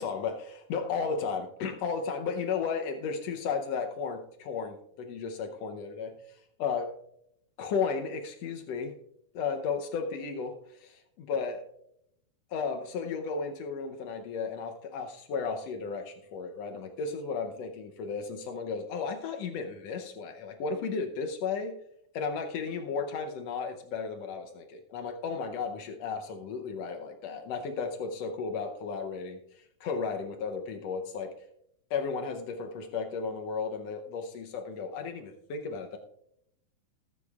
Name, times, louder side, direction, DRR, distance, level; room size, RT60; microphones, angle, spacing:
voice 1, 0.0-6.1 6.6-6.9 7.6-8.9 9.3-11.6 12.5-21.7 22.1-31.3 31.9-36.0, left 5 dB, 90° left, 4 dB, 1.4 m, -34 dB
20.0 x 8.3 x 2.4 m, 0.74 s
omnidirectional pair, 4.1 m